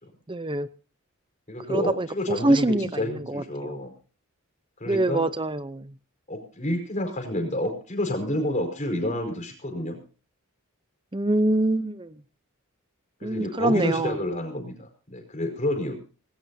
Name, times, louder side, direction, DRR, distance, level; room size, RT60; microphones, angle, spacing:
voice 1, 0.3-0.7 1.7-3.7 4.9-5.9 11.1-12.2 13.2-14.2, right 1 dB, 20° right, 14 dB, 0.7 m, -25 dB
voice 2, 1.5-3.9 4.8-5.3 6.3-10.0 13.2-16.0, left 1 dB, 35° left, 3 dB, 5.0 m, -29 dB
19.5 x 17.5 x 2.8 m, 0.37 s
head